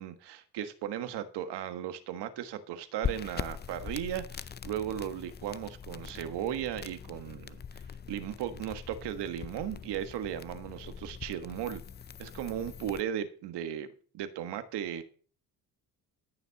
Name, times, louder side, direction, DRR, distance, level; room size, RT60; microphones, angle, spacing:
voice 1, 0.0-7.6 8.1-11.8 12.2-13.9 14.1-15.0, right 10 dB, 85° right, 10 dB, 1.5 m, -36 dB
sound 1, 3.0-13.0, left 7 dB, 25° left, 0.5 m, -42 dB
14.5 x 6.8 x 5.8 m, 0.42 s
cardioid pair, 110°, 40 cm